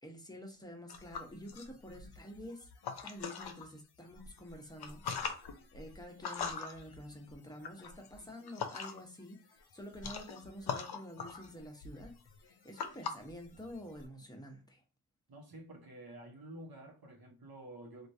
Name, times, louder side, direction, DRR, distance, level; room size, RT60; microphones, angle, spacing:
voice 1, 0.0-2.7 3.0-5.0 5.7-9.4 9.7-12.1 12.4-14.8, equal, 10° left, 0.9 m, -48 dB
sound 1, 0.9-3.7 4.1-9.2 9.5-14.1, left 6 dB, 70° left, 0.6 m, -43 dB
voice 2, 15.3-18.1, right 1 dB, 65° right, 0.9 m, -50 dB
3.0 x 2.4 x 2.6 m
cardioid pair, 60°, 40 cm